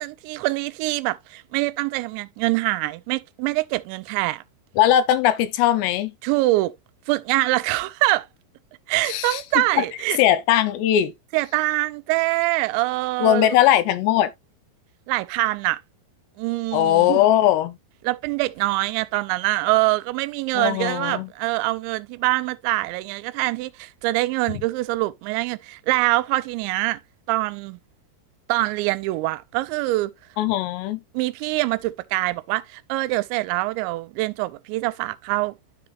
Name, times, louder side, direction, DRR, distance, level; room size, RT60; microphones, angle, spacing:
voice 1, 0.0-4.4 6.2-6.7 7.1-8.3 8.9-10.2 11.3-13.6 15.1-15.8 16.4-17.2 18.0-27.0 27.3-27.8 28.5-30.1 31.1-35.6, right 19 dB, 85° right, 2.9 m, -24 dB
voice 2, 4.8-6.1 9.1-9.6 10.2-11.1 13.2-14.3 16.7-17.8 20.6-21.3 30.4-31.0, left 12 dB, 80° left, 2.6 m, -19 dB
12.5 x 4.2 x 2.4 m
omnidirectional pair, 5.1 m